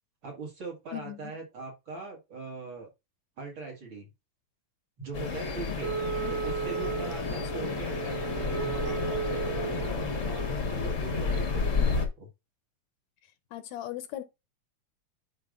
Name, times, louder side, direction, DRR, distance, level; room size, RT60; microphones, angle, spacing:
voice 1, 0.2-2.9 3.4-4.1 5.0-6.0 6.3-12.3, right 3 dB, 45° right, 2.1 m, -41 dB
voice 2, 0.9-1.3 6.2-6.4 7.5-7.8 13.5-14.2, left 13 dB, 75° left, 1.9 m, -39 dB
sound 1, 5.1-12.1, left 4 dB, 45° left, 1.0 m, -31 dB
Wind instrument woodwind instrument, 5.8-9.9, right 7 dB, 75° right, 1.7 m, -35 dB
10.5 x 4.5 x 2.5 m
omnidirectional pair, 3.4 m